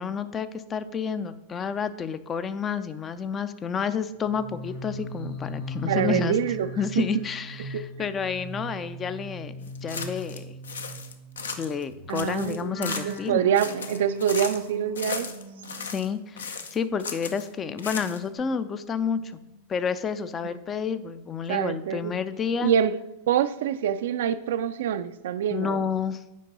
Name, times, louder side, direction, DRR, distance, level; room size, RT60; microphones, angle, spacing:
voice 1, 0.0-6.4 6.8-10.5 11.6-13.4 15.8-19.4 19.7-22.7 25.5-26.2, left 6 dB, 25° left, 12 dB, 0.5 m, -30 dB
sound 1, 4.2-16.5 16.8-18.9 19.2-19.6, right 1 dB, 50° left, 2.2 m, -39 dB
voice 2, 5.9-6.7 7.0-7.1 7.6-7.9 12.1-15.3 20.4-20.5 21.5-22.1 22.6-23.0 23.3-25.8, right 9 dB, 55° right, 12 dB, 0.4 m, -26 dB
sound 2, 9.7-10.4 10.6-11.8 12.1-13.3 13.5-14.7 14.9-16.1 16.4-17.5 17.8-18.4, left 5 dB, 70° left, 0.7 m, -36 dB
8.4 x 5.2 x 5.3 m, 0.95 s
figure-of-eight pair, 90°, 0 cm